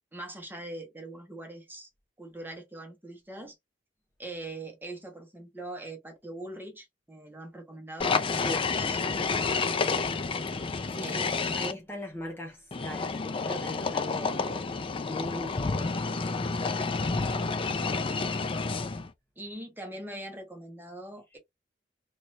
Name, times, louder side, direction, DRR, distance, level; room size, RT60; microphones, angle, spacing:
voice 1, 0.1-1.9 2.2-3.6 4.2-9.1 9.4-10.0 11.0-11.6 19.4-21.4, right 1 dB, 10° right, 1.2 m, -42 dB
sound 1, 8.0-11.7 12.7-19.1, left 4 dB, 30° left, 0.4 m, -30 dB
voice 2, 8.3-8.7 10.9-17.3, left 1 dB, 15° left, 0.9 m, -40 dB
3.2 x 2.9 x 2.6 m
head